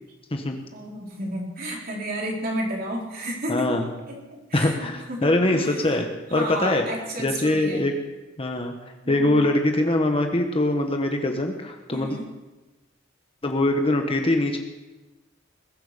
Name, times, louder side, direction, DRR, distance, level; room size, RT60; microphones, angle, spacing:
voice 1, 0.7-3.7 4.1-4.2 4.5-6.0 6.3-7.9 9.0-9.4 11.9-12.3, right 1 dB, 50° right, -2 dB, 4.1 m, -32 dB
voice 2, 3.5-3.9 4.5-6.0 6.3-6.8 7.2-7.9 8.4-8.7 9.1-12.2 13.4-14.6, left 1 dB, 30° left, 4 dB, 1.3 m, -23 dB
21.0 x 7.8 x 6.8 m, 1.1 s
head